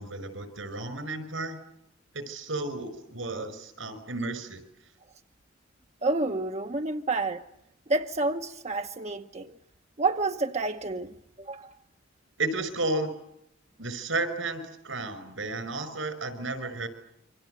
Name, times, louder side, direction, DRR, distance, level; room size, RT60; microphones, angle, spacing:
voice 1, 0.0-1.6 2.1-4.6 12.4-13.1 13.8-16.9, right 2 dB, 80° right, 5.6 m, -33 dB
voice 2, 6.0-7.4 7.9-9.5 10.0-11.7, right 3 dB, 35° right, 1.0 m, -29 dB
28.0 x 25.0 x 7.9 m
head